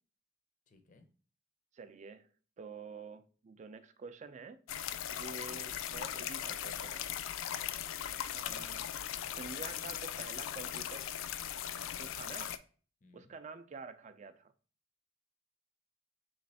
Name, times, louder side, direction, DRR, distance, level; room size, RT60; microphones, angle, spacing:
voice 1, 0.7-1.1 7.4-7.9 11.7-12.3 13.0-13.4, left 3 dB, 40° left, 0.6 m, -63 dB
voice 2, 1.7-2.3 2.6-4.6 5.1-7.1 8.3-11.1 11.8-12.6 13.1-14.5, right 4 dB, 35° right, 0.4 m, -48 dB
sound 1, 4.7-12.6, left 10 dB, 85° left, 0.3 m, -39 dB
3.3 x 3.2 x 4.0 m
head